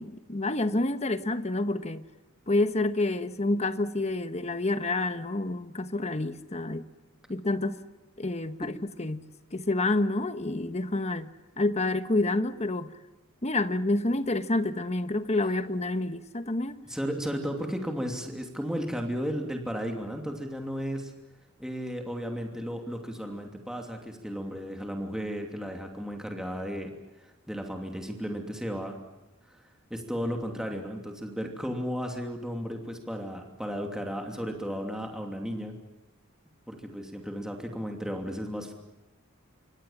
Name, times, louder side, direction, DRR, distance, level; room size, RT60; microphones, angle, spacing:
voice 1, 0.0-2.1 2.5-6.8 7.3-7.8 8.2-8.7 9.0-12.9 13.4-16.8, left 2 dB, 30° left, 1.2 m, -28 dB
voice 2, 16.9-21.1 21.6-26.9 27.2-29.0 29.5-29.6 29.9-35.7 36.7-38.7, equal, 5° right, 2.8 m, -34 dB
28.0 x 24.5 x 7.4 m
head